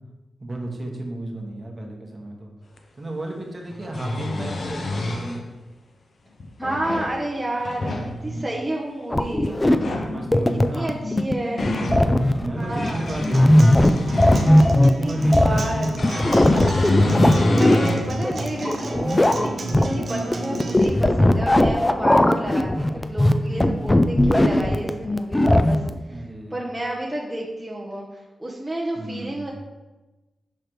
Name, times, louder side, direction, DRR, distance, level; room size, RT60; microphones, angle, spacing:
voice 1, 0.4-2.5 3.0-5.6 7.9-8.4 9.9-10.9 11.7-16.8 19.3-19.8 26.0-26.6 28.9-29.5, right 1 dB, 30° right, 0 dB, 1.0 m, -33 dB
sound 1, 2.8-2.9 3.7-5.4 6.4-7.1 7.6-8.1 9.7-10.1 11.1-12.0 12.6-14.8 16.0-18.1 18.6-18.7 20.2-20.3, left 2 dB, 55° left, 0.7 m, -27 dB
voice 2, 6.6-8.0 8.2-9.6 10.7-11.6 12.4-13.1 14.8-16.0 17.5-25.8 26.1-26.2 26.5-29.5, right 1 dB, 10° right, -4 dB, 0.7 m, -30 dB
sound 2, 9.1-25.9, left 1 dB, 15° left, 0.3 m, -19 dB
Acoustic guitar, 12.9-20.8, right 3 dB, 60° right, 0.7 m, -34 dB
6.4 x 3.3 x 4.5 m, 1.1 s
wide cardioid pair, 100°, 0 cm